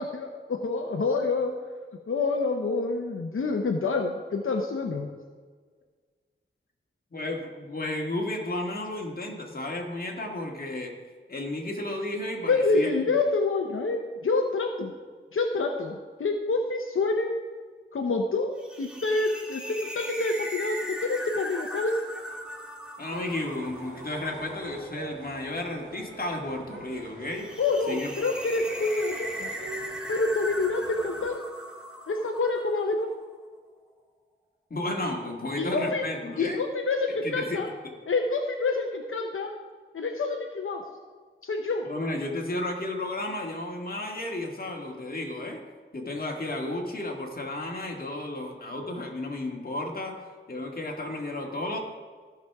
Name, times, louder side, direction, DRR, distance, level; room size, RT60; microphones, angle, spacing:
voice 1, 0.0-1.5 2.1-5.1 12.5-14.9 15.3-17.4 17.9-22.0 27.6-29.5 30.1-31.4 32.1-33.1 35.6-36.0 36.4-37.7 38.1-39.5 39.9-40.8 41.4-41.9, left 3 dB, 85° left, 2 dB, 0.8 m, -27 dB
voice 2, 7.1-11.0 11.3-12.9 23.0-27.5 27.9-28.1 34.7-36.6 37.2-37.9 41.8-45.6 45.9-50.2 50.5-51.8, left 1 dB, 45° left, 0 dB, 1.8 m, -33 dB
sound 1, 18.6-32.9, equal, 5° right, 1.7 m, -39 dB
sound 2, 23.1-31.3, right 2 dB, 75° right, 2.4 m, -44 dB
15.5 x 6.1 x 3.5 m, 1.5 s
wide cardioid pair, 60°, 21 cm